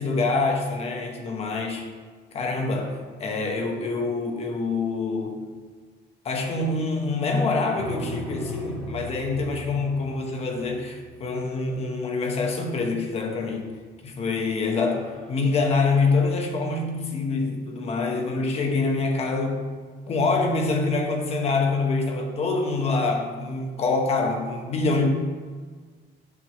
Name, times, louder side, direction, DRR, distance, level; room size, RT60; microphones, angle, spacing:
voice 1, 0.0-1.9 2.3-5.6 6.2-13.6 14.0-19.7 20.1-25.1, left 3 dB, 35° left, 3 dB, 1.0 m, -25 dB
Echo Impact, 7.7-11.6 13.5-14.0 14.3-14.4 14.7-15.3, left 1 dB, 5° left, 1.3 m, -39 dB
9.4 x 3.4 x 6.2 m, 1.5 s
cardioid pair, 175°, 19 cm